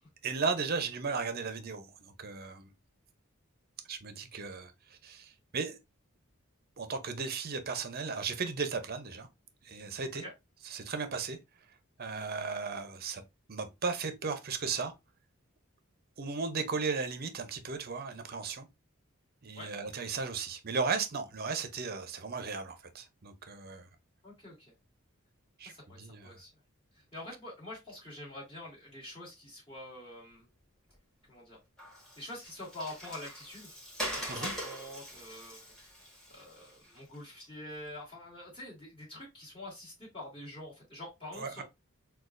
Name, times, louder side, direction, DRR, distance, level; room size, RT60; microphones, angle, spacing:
voice 1, 0.2-2.7 3.9-4.7 5.0-5.8 6.8-9.3 9.6-10.2 10.6-11.4 12.0-13.2 13.5-14.9 16.2-18.7 19.4-23.9 25.6-25.7 26.0-26.3 34.3-34.5 41.4-41.6, right 4 dB, 45° right, 0.7 m, -35 dB
voice 2, 24.2-24.7 25.6-26.5 26.9-30.5 31.3-31.6 32.2-33.7 34.1-35.9 36.3-41.6, left 1 dB, 25° left, 2.0 m, -46 dB
Water, 31.8-37.2, equal, 5° left, 1.4 m, -42 dB
6.2 x 2.4 x 2.5 m
head